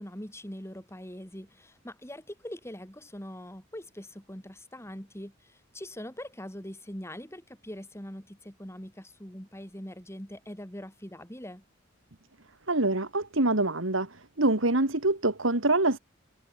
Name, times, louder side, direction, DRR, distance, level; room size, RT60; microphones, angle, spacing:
voice 1, 0.0-5.3 5.7-11.6, equal, 15° left, 5.3 m, -42 dB
voice 2, 12.7-14.1 14.4-16.0, right 2 dB, 65° right, 2.3 m, -25 dB
head